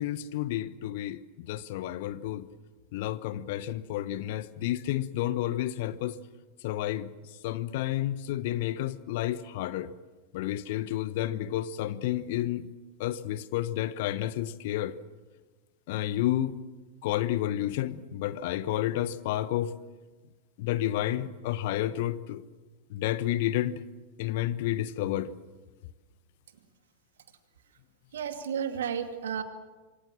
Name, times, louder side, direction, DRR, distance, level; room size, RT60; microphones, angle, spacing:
voice 1, 0.0-2.5 2.9-6.2 6.6-7.1 7.4-9.9 10.3-12.7 13.0-14.9 15.9-16.6 17.0-19.7 20.6-22.4 22.9-23.8 24.2-25.3, left 13 dB, 50° left, 1.1 m, -30 dB
voice 2, 28.1-29.4, right 8 dB, 60° right, 2.4 m, -32 dB
27.5 x 23.5 x 7.4 m
figure-of-eight pair, 90°, 0 cm